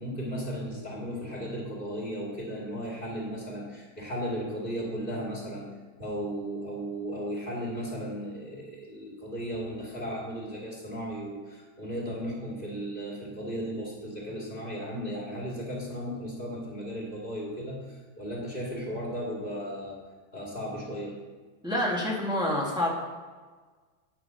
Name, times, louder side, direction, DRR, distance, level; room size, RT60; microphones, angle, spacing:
voice 1, 0.0-21.2, equal, 25° left, -4 dB, 2.4 m, -35 dB
voice 2, 21.6-22.9, left 1 dB, ahead, -4 dB, 1.9 m, -27 dB
9.7 x 6.1 x 6.8 m, 1.4 s
omnidirectional pair, 2.2 m